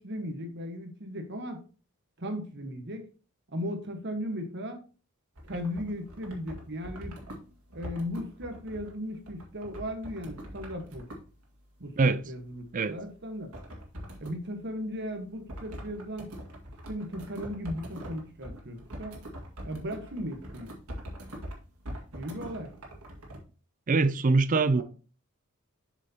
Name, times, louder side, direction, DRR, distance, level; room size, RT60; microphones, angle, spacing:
voice 1, 0.0-1.6 2.2-3.1 3.5-4.8 5.4-7.2 7.7-11.1 11.8-13.5 14.2-16.3 16.9-19.3 19.6-20.7 22.1-22.7 24.7-24.8, equal, 55° right, 1.4 m, -37 dB
sound 1, 5.4-11.4 13.5-14.4 15.5-23.4, equal, 85° right, 2.1 m, -43 dB
voice 2, 23.9-24.8, right 3 dB, 35° right, 0.4 m, -23 dB
7.4 x 6.3 x 2.9 m
head